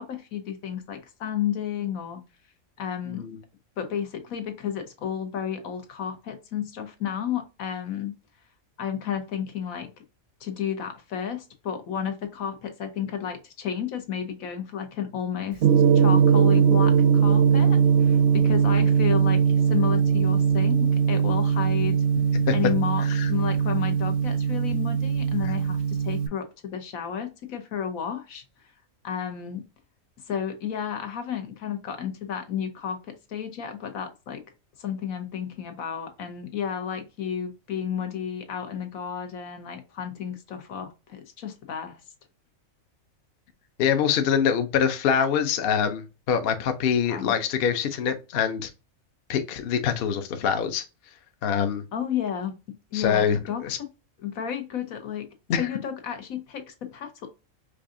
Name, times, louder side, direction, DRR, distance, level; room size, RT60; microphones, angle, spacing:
voice 1, 0.0-2.2 2.8-3.2 3.8-8.2 8.8-9.9 10.4-15.7 15.9-21.9 22.5-28.4 29.0-29.6 30.3-34.4 34.8-42.0 47.0-47.3 51.9-52.5 52.9-53.6 54.2-55.3 55.6-57.3, left 8 dB, 85° left, 1.3 m, -32 dB
voice 2, 3.1-3.4 22.5-22.6 23.0-23.3 43.8-48.7 49.3-50.9 51.4-51.8 52.9-53.8 55.5-55.7, left 7 dB, 55° left, 0.7 m, -24 dB
Gong, 15.6-26.3, right 7 dB, 60° right, 0.6 m, -20 dB
4.7 x 2.5 x 2.6 m
omnidirectional pair, 1.4 m